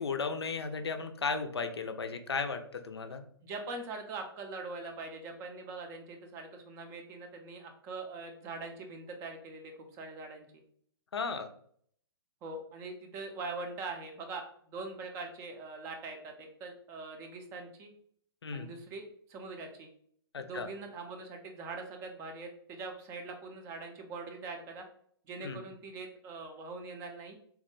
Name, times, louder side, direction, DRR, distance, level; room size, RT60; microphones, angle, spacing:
voice 1, 0.0-3.2 11.1-11.5 18.4-18.7 20.3-20.7 25.4-25.6, left 4 dB, 80° left, 7 dB, 0.4 m, -35 dB
voice 2, 3.4-10.6 12.4-17.9 18.5-19.9 20.4-24.8 25.3-27.4, right 3 dB, 20° right, 4 dB, 0.5 m, -42 dB
3.4 x 2.1 x 3.1 m, 0.63 s
figure-of-eight pair, 120°, 13 cm